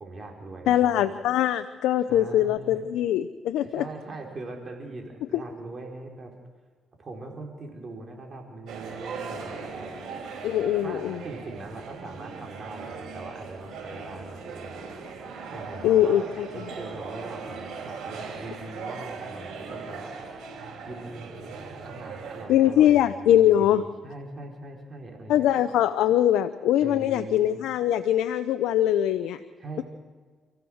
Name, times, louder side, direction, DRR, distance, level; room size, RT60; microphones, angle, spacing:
voice 1, 0.0-1.1 2.1-2.8 3.6-6.3 7.0-9.9 10.8-14.8 15.2-20.1 20.9-21.5 21.8-25.5 26.8-27.6 29.6-29.8, right 2 dB, 40° right, 1 dB, 4.4 m, -41 dB
voice 2, 0.7-3.8 10.4-11.2 15.8-16.5 22.5-23.8 25.3-29.4, left 11 dB, 90° left, 10 dB, 0.7 m, -22 dB
sound 1, 8.7-22.5, right 4 dB, 75° right, 6.0 m, -39 dB
28.0 x 15.0 x 6.5 m, 1.5 s
cardioid pair, 90°, 0 cm